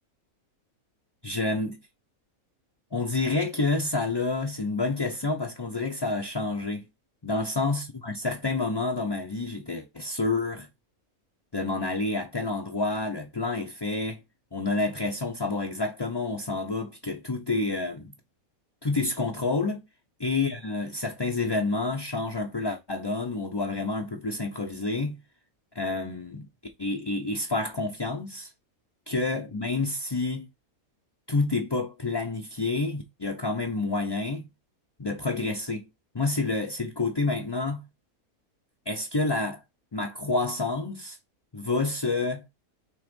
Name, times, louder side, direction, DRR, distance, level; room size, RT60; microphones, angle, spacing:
voice 1, 1.2-1.8 2.9-6.8 7.2-10.7 11.5-14.2 14.5-18.1 18.8-19.8 20.2-25.1 25.7-26.5 26.8-28.5 29.1-30.5 31.3-34.4 35.0-35.8 36.1-37.8 38.9-39.6 39.9-41.2 41.5-42.4, left 3 dB, 25° left, 0.6 m, -28 dB
6.3 x 3.1 x 5.3 m
omnidirectional pair, 1.5 m